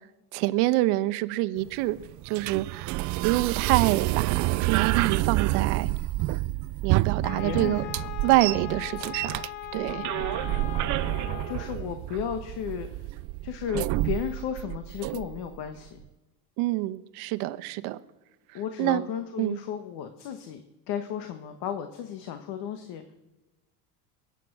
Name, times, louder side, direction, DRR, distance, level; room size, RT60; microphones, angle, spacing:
voice 1, 0.3-2.0 2.2-3.0 3.2-5.9 6.8-7.8 8.2-9.4 9.7-10.0 16.6-18.0 18.8-19.0 19.4-19.6, right 18 dB, 70° right, 12 dB, 1.0 m, -26 dB
sound 1, 1.6-15.6, right 18 dB, 40° right, 0.4 m, -29 dB
Wind instrument woodwind instrument, 7.2-11.8, left 15 dB, 75° left, 1.4 m, -39 dB
voice 2, 7.4-8.1 11.0-13.1 13.4-16.0 18.5-23.1, left 8 dB, 60° left, 8 dB, 1.5 m, -34 dB
21.5 x 9.2 x 6.1 m, 1.1 s
supercardioid pair, 125°, 47 cm